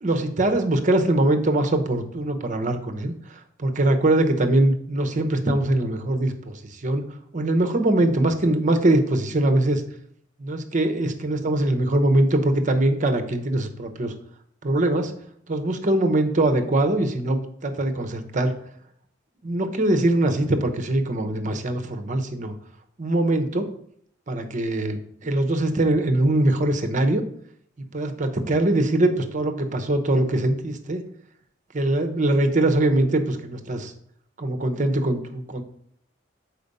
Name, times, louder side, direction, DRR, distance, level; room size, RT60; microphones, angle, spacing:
voice 1, 0.0-7.0 7.3-9.8 10.4-14.1 14.6-15.1 15.5-18.5 19.4-22.5 23.0-23.6 24.3-27.2 27.9-31.0 31.7-33.9 34.4-35.6, right 1 dB, 40° right, 7 dB, 0.8 m, -22 dB
6.6 x 4.5 x 5.3 m, 0.66 s
head